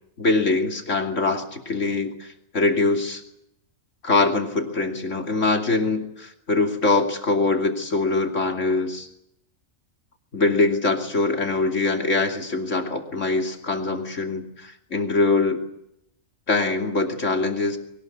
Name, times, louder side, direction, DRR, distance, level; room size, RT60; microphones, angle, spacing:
voice 1, 0.2-3.2 4.0-9.1 10.3-15.6 16.5-17.8, left 3 dB, 65° left, 3 dB, 3.1 m, -23 dB
23.0 x 19.0 x 9.7 m, 0.80 s
omnidirectional pair, 1.4 m